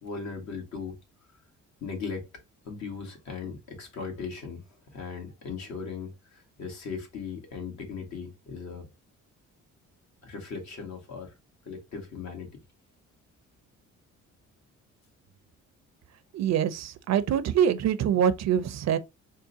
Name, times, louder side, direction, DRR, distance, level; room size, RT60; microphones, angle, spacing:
voice 1, 0.0-1.0 1.8-2.3 2.6-8.9 10.2-11.3 11.6-12.6, left 5 dB, 65° left, 1.6 m, -38 dB
voice 2, 16.3-19.0, right 9 dB, 60° right, 0.6 m, -24 dB
3.7 x 2.2 x 3.9 m
cardioid pair, 90°, 30 cm